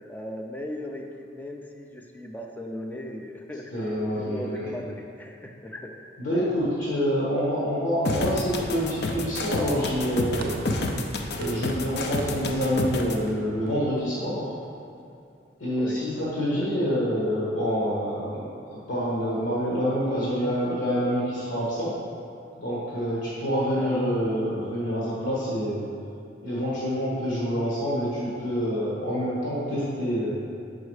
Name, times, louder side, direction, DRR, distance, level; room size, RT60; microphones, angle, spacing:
voice 1, 0.0-6.0 15.8-16.1 16.4-17.0 23.8-24.1, left 1 dB, 10° left, 2 dB, 0.4 m, -38 dB
voice 2, 3.7-4.6 6.2-10.6 11.3-14.5 15.6-21.9 22.6-25.9 26.4-30.5, equal, 85° left, -8 dB, 1.5 m, -27 dB
sound 1, 8.0-13.2, left 2 dB, 60° left, 0.5 m, -29 dB
sound 2, 10.4-14.8, right 2 dB, 55° right, 0.5 m, -43 dB
5.4 x 4.8 x 4.8 m, 2.4 s
head